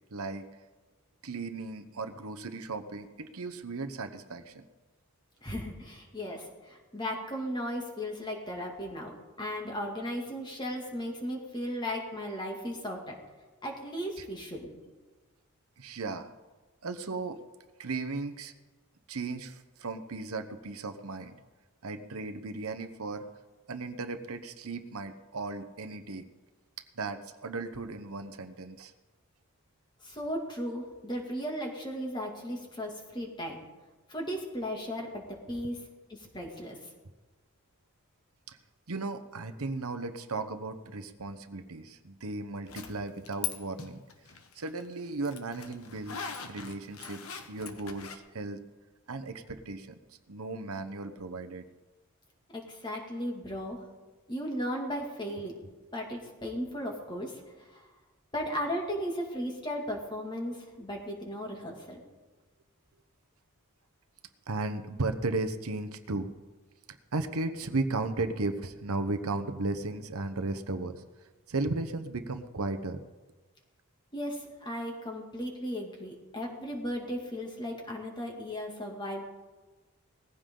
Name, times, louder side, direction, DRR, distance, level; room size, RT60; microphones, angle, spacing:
voice 1, 0.1-0.5 1.2-4.6 14.2-14.3 15.8-16.3 16.8-17.4 17.8-18.5 19.1-21.4 21.8-23.3 23.7-26.3 27.0-28.9 38.5-38.6 38.9-44.0 44.5-48.6 49.1-50.0 50.3-51.7 64.5-66.3 67.1-71.0 71.5-73.0, right 3 dB, 75° right, 8 dB, 0.9 m, -35 dB
voice 2, 5.4-9.1 9.4-13.1 13.6-14.9 30.0-33.6 34.1-35.8 36.1-36.8 52.5-53.8 54.3-55.5 55.9-57.8 58.3-62.0 74.1-79.2, equal, 20° left, 0 dB, 2.4 m, -36 dB
Zipper (clothing), 42.7-43.5 43.8-48.2, left 7 dB, 75° left, 1.4 m, -40 dB
19.5 x 15.5 x 3.9 m, 1.2 s
head